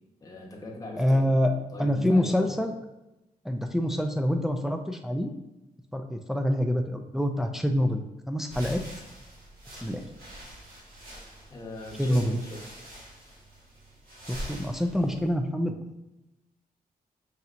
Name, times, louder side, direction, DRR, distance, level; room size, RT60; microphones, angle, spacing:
voice 1, 0.2-2.5 11.5-12.7, left 2 dB, 25° left, -2 dB, 0.9 m, -41 dB
voice 2, 1.0-1.5 1.8-2.7 3.5-5.3 5.9-8.8 9.8-10.0 12.0-12.4 14.3-15.8, equal, 5° right, 5 dB, 0.4 m, -26 dB
sound 1, 8.4-15.3, equal, 80° right, 1.4 m, -44 dB
5.4 x 2.8 x 2.5 m, 0.96 s
cardioid pair, 80°, 15 cm